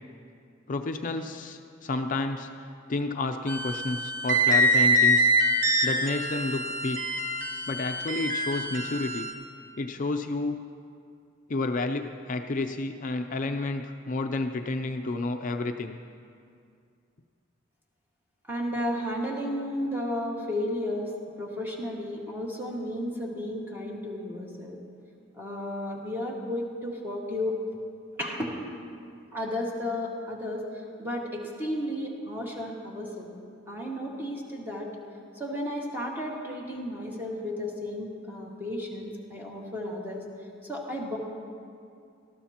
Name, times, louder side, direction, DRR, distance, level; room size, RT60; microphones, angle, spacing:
voice 1, 0.7-2.5 2.9-5.3 5.8-7.1 7.7-9.3 9.8-10.6 11.5-16.0, left 2 dB, 45° left, 6 dB, 0.5 m, -30 dB
sound 1, 3.5-9.3, right 1 dB, 45° right, 1.4 m, -25 dB
voice 2, 18.5-21.1 21.4-24.8 25.4-27.6 28.2-33.3 33.7-34.9 35.4-40.3 40.6-41.2, left 1 dB, 10° right, -3 dB, 1.7 m, -33 dB
19.5 x 13.5 x 2.9 m, 2.4 s
head